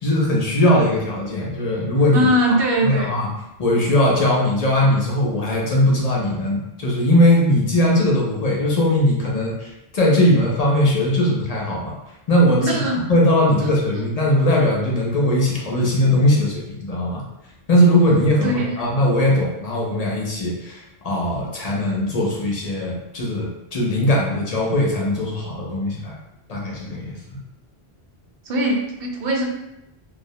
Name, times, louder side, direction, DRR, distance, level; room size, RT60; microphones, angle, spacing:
voice 1, 0.0-2.3 2.8-3.3 3.6-11.9 12.3-12.8 13.1-17.2 17.7-26.2 26.5-27.4, left 1 dB, 50° left, -3 dB, 0.5 m, -19 dB
voice 2, 2.1-3.1 12.6-13.0 18.4-18.9 28.5-29.4, right 1 dB, 65° right, 0 dB, 0.7 m, -21 dB
2.3 x 2.0 x 2.6 m, 0.87 s
omnidirectional pair, 1.1 m